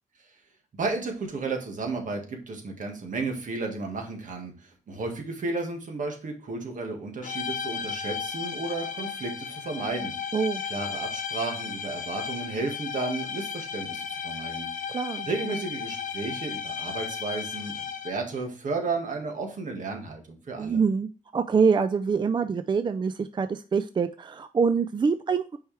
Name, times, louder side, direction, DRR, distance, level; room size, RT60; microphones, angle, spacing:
voice 1, 0.7-10.1 10.6-14.7 15.3-20.8, right 3 dB, 70° right, 3 dB, 1.7 m, -33 dB
sound 1, 7.2-18.3, left 7 dB, 70° left, 0.9 m, -35 dB
voice 2, 14.9-15.3 20.6-25.6, right 5 dB, 35° right, 10 dB, 0.3 m, -25 dB
6.1 x 4.8 x 3.3 m, 0.37 s
cardioid pair, 85°, 14 cm